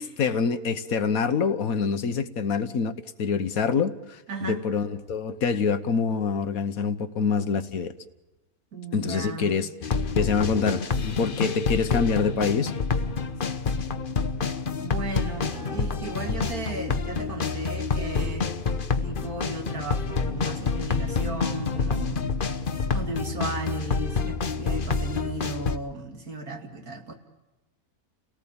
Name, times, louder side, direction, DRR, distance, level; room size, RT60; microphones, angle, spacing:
voice 1, 0.2-7.9 8.9-9.7 10.2-12.7, left 5 dB, 70° left, 11 dB, 1.5 m, -26 dB
voice 2, 4.3-4.6 8.7-9.5 14.8-18.5 19.0-22.3 22.9-27.1, right 2 dB, 75° right, 4 dB, 3.0 m, -35 dB
sound 1, 9.8-25.8, left 4 dB, 40° left, 1.0 m, -28 dB
Acoustic guitar, 15.5-20.4, right 2 dB, 45° right, 6.6 m, -50 dB
30.0 x 18.5 x 8.7 m, 1.1 s
omnidirectional pair, 1.6 m